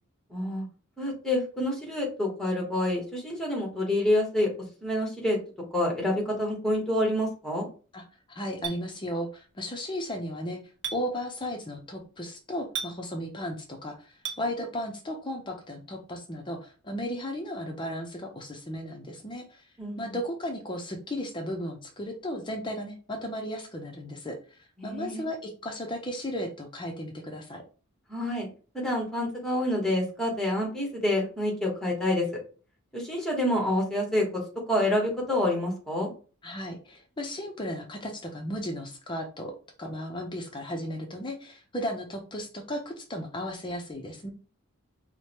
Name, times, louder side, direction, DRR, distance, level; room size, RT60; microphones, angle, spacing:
voice 1, 0.3-0.6 1.0-4.5 4.8-5.4 5.7-7.7 19.8-20.1 24.8-25.2 28.1-28.5 28.7-32.3 32.9-34.3 34.7-36.1, left 1 dB, ahead, -1 dB, 1.1 m, -27 dB
voice 2, 8.4-10.6 10.9-19.7 20.0-27.6 36.4-39.5 39.8-44.3, equal, 20° left, 2 dB, 0.5 m, -35 dB
Chink clink, 8.6-8.8 10.8-11.0 12.7-12.9 14.2-14.4, right 7 dB, 50° right, 0.6 m, -33 dB
4.7 x 2.1 x 2.9 m, 0.37 s
head